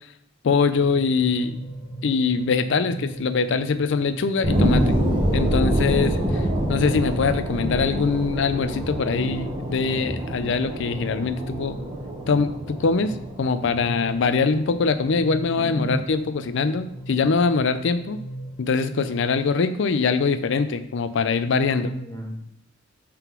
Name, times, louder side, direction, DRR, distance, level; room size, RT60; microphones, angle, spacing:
voice 1, 0.4-1.6 2.0-5.0 5.3-11.7 12.3-13.1 13.4-18.2 18.6-21.9, left 4 dB, 65° left, 11 dB, 0.5 m, -23 dB
sound 1, 0.6-19.5, right 1 dB, 50° left, 1.2 m, -38 dB
sound 2, 4.4-15.4 15.9-16.0, equal, 25° right, 1.3 m, -26 dB
voice 2, 15.6-15.9 21.5-22.5, equal, 15° left, -1 dB, 1.3 m, -34 dB
5.7 x 3.8 x 5.9 m, 0.73 s
head